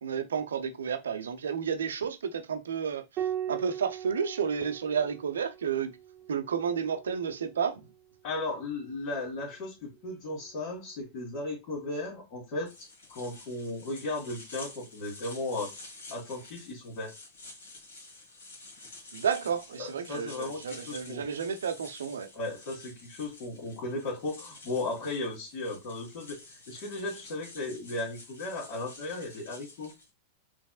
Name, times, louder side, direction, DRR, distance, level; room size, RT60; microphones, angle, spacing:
voice 1, 0.0-5.9 6.3-7.8 19.1-22.3, right 7 dB, 65° right, 0.6 m, -31 dB
Piano, 3.2-8.0 9.7-10.5, right 10 dB, 35° right, 0.8 m, -40 dB
voice 2, 8.2-12.7 13.1-15.7 16.1-17.1 19.8-21.3 22.3-26.4 26.7-29.9, left 2 dB, 45° left, 1.9 m, -36 dB
sound 1, 12.7-30.1, left 2 dB, 60° left, 1.6 m, -50 dB
5.2 x 3.4 x 2.4 m
figure-of-eight pair, 90°, 0 cm